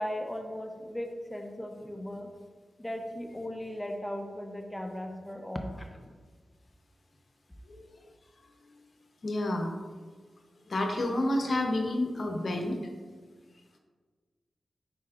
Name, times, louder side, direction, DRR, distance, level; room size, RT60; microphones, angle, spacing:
voice 1, 0.0-2.3 2.8-6.0, equal, 15° left, 4 dB, 0.6 m, -37 dB
voice 2, 9.2-9.7 10.7-12.9, left 1 dB, 65° left, 3 dB, 0.9 m, -29 dB
9.2 x 4.3 x 2.5 m, 1.5 s
cardioid pair, 55°, 0 cm